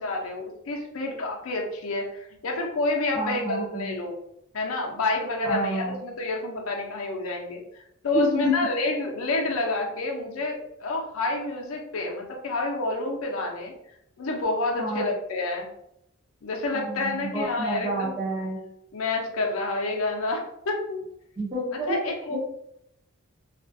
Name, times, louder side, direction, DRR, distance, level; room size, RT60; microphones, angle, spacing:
voice 1, 0.0-4.1 4.5-13.7 14.2-15.7 16.4-18.1 18.9-20.4 20.7-21.0 21.9-22.4, left 2 dB, 70° left, 1 dB, 0.5 m, -28 dB
voice 2, 3.1-3.9 5.4-6.0 8.1-8.5 14.7-15.1 16.7-18.6 21.4-22.0 22.3-22.4, equal, 15° right, -7 dB, 0.5 m, -29 dB
2.3 x 2.1 x 2.5 m, 0.77 s
head